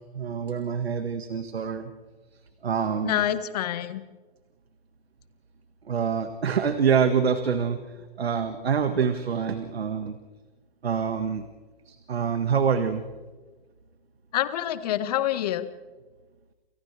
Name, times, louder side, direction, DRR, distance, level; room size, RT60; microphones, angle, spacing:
voice 1, 0.1-1.9 2.6-3.2 5.9-7.8 8.2-10.2 10.8-11.4 11.9-13.0, right 6 dB, 80° right, 8 dB, 1.8 m, -26 dB
voice 2, 3.0-4.0 14.3-15.7, left 12 dB, 40° left, 11 dB, 1.6 m, -26 dB
29.5 x 28.5 x 3.4 m, 1.3 s
hypercardioid pair, 150°, 31 cm